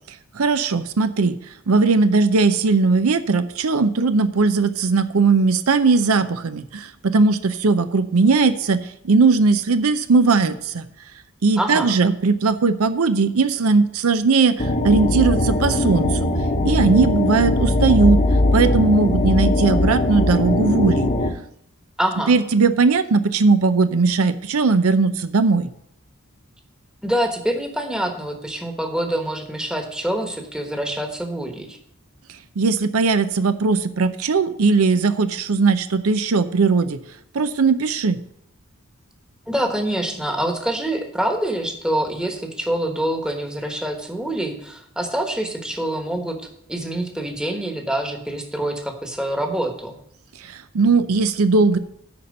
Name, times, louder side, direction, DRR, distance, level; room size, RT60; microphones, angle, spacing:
voice 1, 0.3-1.4 1.7-10.8 11.4-16.3 16.6-18.2 18.5-21.1 22.3-25.7 32.6-37.0 37.3-38.2 50.4-51.8, right 4 dB, 80° right, 11 dB, 0.6 m, -18 dB
voice 2, 11.6-11.9 22.0-22.3 27.0-31.8 39.5-46.4 46.7-50.0, right 1 dB, 5° right, 4 dB, 1.2 m, -25 dB
sound 1, 14.6-21.3, left 1 dB, 35° left, 1.0 m, -20 dB
10.5 x 4.3 x 7.9 m, 0.74 s
head